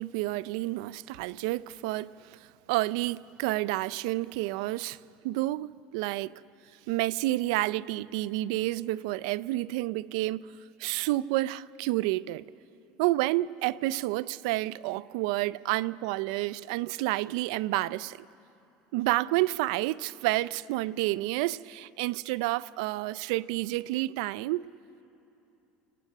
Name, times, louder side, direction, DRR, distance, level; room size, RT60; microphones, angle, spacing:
voice 1, 0.0-2.4 2.7-6.4 6.9-10.5 10.8-12.4 13.0-18.3 18.9-24.7, right 18 dB, 75° right, 0.4 m, -30 dB
29.0 x 18.0 x 6.6 m
cardioid pair, 170°, 4 cm